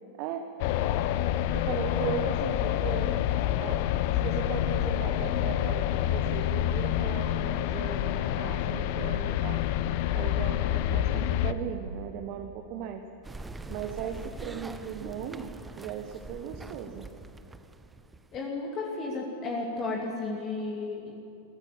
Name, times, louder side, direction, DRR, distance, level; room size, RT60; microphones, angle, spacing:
sound 1, 0.6-11.5, left 12 dB, 45° left, 0.8 m, -27 dB
voice 1, 1.5-3.1 3.6-3.8 4.2-9.6 10.1-13.0 13.7-17.1, right 8 dB, 45° right, 5 dB, 1.4 m, -37 dB
sound 2, 13.2-18.4, right 3 dB, 10° right, 0.9 m, -43 dB
voice 2, 18.3-21.1, left 3 dB, 30° left, -1 dB, 2.6 m, -33 dB
22.5 x 15.0 x 8.7 m, 2.9 s
figure-of-eight pair, 90°, 0 cm